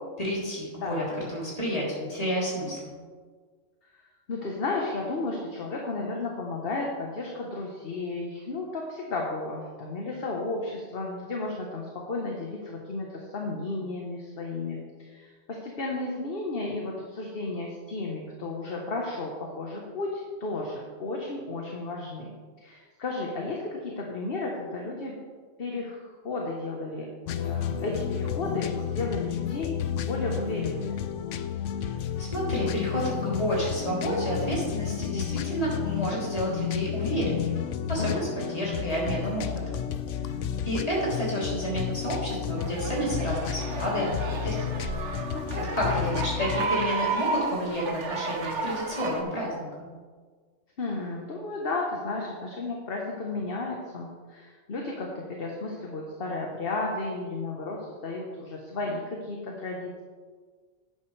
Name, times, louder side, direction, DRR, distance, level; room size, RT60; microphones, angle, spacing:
voice 1, 0.2-1.0 1.3-2.9 31.8-31.9 32.2-37.6 37.9-39.8 40.6-44.6 45.7-49.9, equal, 30° left, -6 dB, 3.4 m, -30 dB
voice 2, 0.8-1.1 4.3-22.3 22.6-25.2 25.6-27.1 27.4-29.7 30.0-30.9 38.0-38.2 45.3-45.9 50.8-60.0, left 3 dB, 50° left, -1 dB, 1.3 m, -33 dB
sound 1, 27.3-46.7, left 9 dB, 70° left, 0.9 m, -31 dB
sound 2, 42.6-49.2, right 4 dB, 65° right, 1.3 m, -33 dB
11.5 x 9.3 x 3.3 m, 1.5 s
omnidirectional pair, 1.3 m